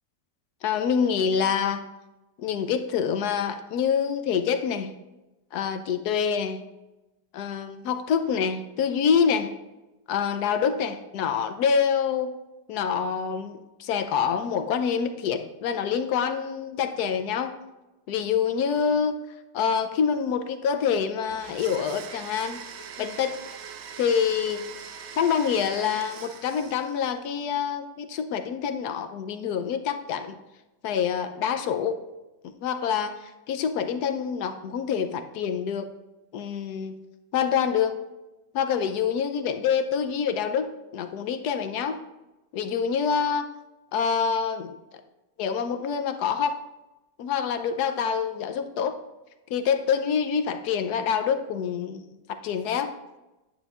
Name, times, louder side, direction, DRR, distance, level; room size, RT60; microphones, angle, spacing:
voice 1, 0.6-1.8 2.4-4.9 5.5-6.6 7.3-9.5 10.1-12.3 12.7-17.5 18.1-19.2 19.5-22.6 23.0-23.4 24.0-24.6 25.2-30.4 30.8-32.0 32.6-35.9 36.3-36.9 37.3-38.0 38.5-42.0 42.5-43.5 43.9-44.8 45.4-46.6 47.2-49.0 49.5-52.0 52.4-52.9, left 7 dB, 70° left, 9 dB, 1.1 m, -26 dB
Domestic sounds home sounds, 21.3-27.1, right 7 dB, 75° right, 0.6 m, -42 dB
9.8 x 8.9 x 2.4 m, 1.0 s
omnidirectional pair, 1.9 m